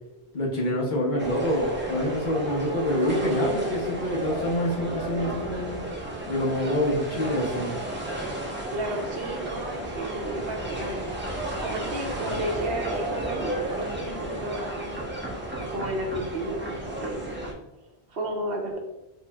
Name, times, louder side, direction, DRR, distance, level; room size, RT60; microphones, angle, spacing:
voice 1, 0.3-5.8 6.3-7.8, left 1 dB, 50° left, -2 dB, 0.8 m, -26 dB
sound 1, 1.2-17.5, right 1 dB, 15° right, 0.6 m, -33 dB
voice 2, 3.1-3.6 8.7-11.2 11.6-15.1 15.6-17.3 18.1-18.8, right 1 dB, 65° right, 1 dB, 0.9 m, -32 dB
4.4 x 3.1 x 2.2 m, 0.96 s
omnidirectional pair, 1.1 m